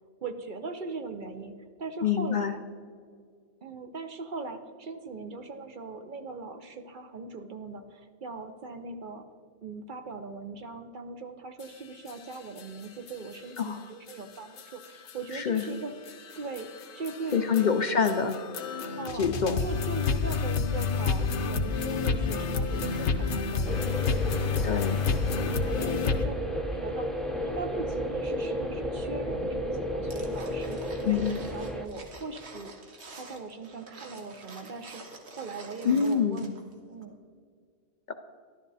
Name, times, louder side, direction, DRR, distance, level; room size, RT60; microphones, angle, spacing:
voice 1, 0.2-2.6 3.6-9.3 9.6-15.9 16.4-17.7 19.0-24.7 25.6-26.4 26.7-27.1 27.4-32.7 33.1-36.6 36.9-37.2, right 4 dB, 50° right, 7 dB, 0.8 m, -40 dB
voice 2, 2.0-2.5 13.6-13.8 15.3-15.6 17.3-18.4 19.2-19.6 24.6-25.0 31.0-31.3 35.8-36.5 38.1-38.2, left 6 dB, 55° left, 7 dB, 0.6 m, -26 dB
sound 1, 11.6-11.7 12.1-12.2 12.6-12.7 13.1-13.2 13.6-13.7 14.1-14.2 14.6-26.2, left 5 dB, 85° left, 1.1 m, -30 dB
sound 2, 23.6-31.9, equal, ahead, 0.6 m, -33 dB
sound 3, 30.1-36.7 37.0-37.1, right 3 dB, 75° right, 1.6 m, -47 dB
12.5 x 12.0 x 4.1 m, 2.1 s
omnidirectional pair, 1.1 m